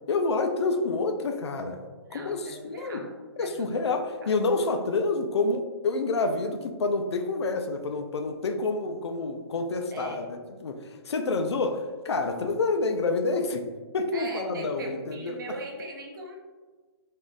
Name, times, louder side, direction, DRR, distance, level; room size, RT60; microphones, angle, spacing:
voice 1, 0.1-1.8 2.1-3.0 3.4-13.7 13.9-15.6, left 3 dB, 85° left, 6 dB, 0.4 m, -28 dB
voice 2, 2.0-3.1 3.4-3.8 9.9-10.2 14.1-16.4, right 2 dB, 50° right, 0 dB, 0.7 m, -39 dB
3.5 x 2.5 x 2.5 m, 1.4 s
hypercardioid pair, 160°, 14 cm